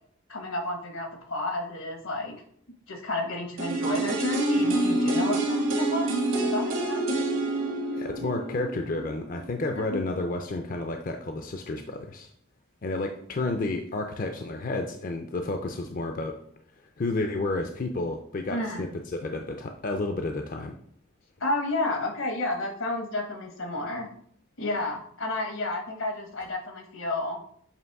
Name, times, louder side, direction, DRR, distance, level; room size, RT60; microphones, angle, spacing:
voice 1, 0.3-2.4 2.9-6.1 6.4-7.0 9.7-10.0 18.5-18.8 21.4-24.1 24.6-27.4, left 2 dB, 80° left, 4 dB, 1.1 m, -31 dB
sound 1, 3.6-9.5 9.8-9.9, right 2 dB, 75° right, 1.6 m, -27 dB
voice 2, 7.9-12.3 12.8-16.3 17.0-18.9 19.2-20.8, left 2 dB, 40° left, 5 dB, 0.4 m, -31 dB
7.6 x 2.9 x 4.6 m, 0.66 s
head